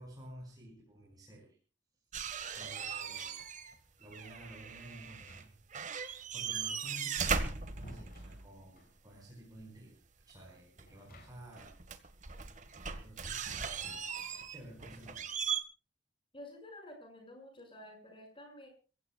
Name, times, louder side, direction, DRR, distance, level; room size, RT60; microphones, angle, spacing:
voice 1, 0.0-1.6 2.5-3.4 4.0-5.4 6.3-11.8 13.0-13.4 14.5-15.2, right 1 dB, 20° right, -3 dB, 5.0 m, -52 dB
sound 1, 2.1-3.8 4.0-5.4 5.7-8.5 10.8-10.9 11.5-15.6, right 6 dB, 40° right, 1.5 m, -38 dB
sound 2, 5.0-5.9 7.2-9.0 10.8-11.7 11.9-12.0 13.5-14.6, right 1 dB, 50° left, 5.7 m, -55 dB
voice 2, 16.3-18.8, left 1 dB, 30° left, 4 dB, 6.0 m, -51 dB
29.0 x 16.0 x 2.3 m, 0.36 s
head